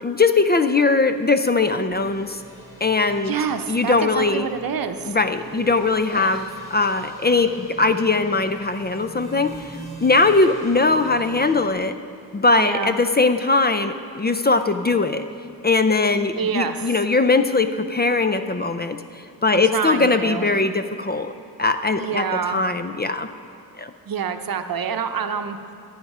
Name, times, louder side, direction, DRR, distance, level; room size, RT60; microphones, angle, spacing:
voice 1, 0.0-2.4 2.8-3.3 3.7-4.5 5.0-12.0 12.3-15.3 15.6-19.0 19.4-21.3 21.6-22.3 22.5-23.3 23.8-23.9, left 3 dB, 25° left, 9 dB, 0.4 m, -20 dB
sound 1, 1.9-11.7, right 3 dB, 10° right, 3.0 m, -42 dB
voice 2, 3.2-5.2 6.1-6.5 12.6-13.0 16.4-16.9 19.5-20.5 22.0-22.6 24.1-25.7, right 7 dB, 60° right, 8 dB, 0.8 m, -27 dB
15.5 x 8.7 x 5.4 m, 2.7 s
wide cardioid pair, 100°, 38 cm